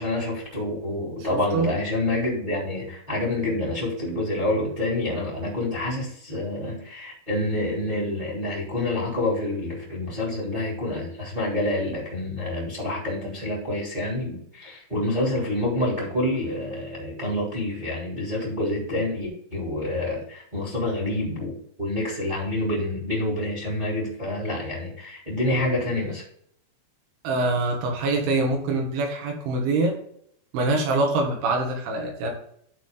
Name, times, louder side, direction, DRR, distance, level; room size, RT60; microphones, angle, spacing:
voice 1, 0.0-26.2, left 1 dB, 10° right, -5 dB, 2.6 m, -27 dB
voice 2, 1.3-1.7 27.2-29.9 30.5-32.3, right 2 dB, 75° right, 2 dB, 4.0 m, -24 dB
11.5 x 4.7 x 3.9 m, 0.67 s
omnidirectional pair, 5.6 m